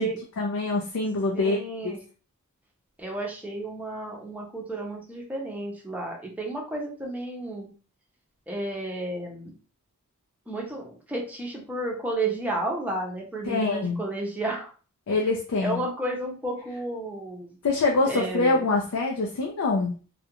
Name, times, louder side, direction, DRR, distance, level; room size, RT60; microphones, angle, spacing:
voice 1, 0.4-1.6 1.8-1.9 13.4-14.0 15.1-15.8 17.6-19.9, left 3 dB, 75° left, 0 dB, 0.4 m, -25 dB
voice 2, 1.3-2.0 3.0-7.7 8.5-9.5 10.5-14.7 15.6-17.5 18.1-18.7, right 2 dB, 5° right, -1 dB, 0.5 m, -32 dB
2.4 x 2.2 x 2.8 m, 0.37 s
head